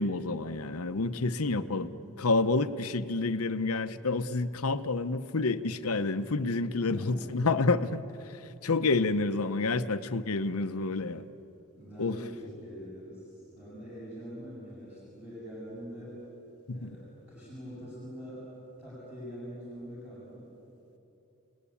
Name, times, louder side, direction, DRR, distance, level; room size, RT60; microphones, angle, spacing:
voice 1, 0.0-1.9 2.2-8.0 8.3-11.2 12.0-12.2 16.7-16.9, left 3 dB, 85° left, 11 dB, 0.9 m, -29 dB
voice 2, 1.4-1.9 6.8-7.3 11.7-16.2 16.7-18.4 18.8-20.5, equal, 5° right, -9 dB, 6.8 m, -44 dB
30.0 x 19.5 x 8.6 m, 2.8 s
head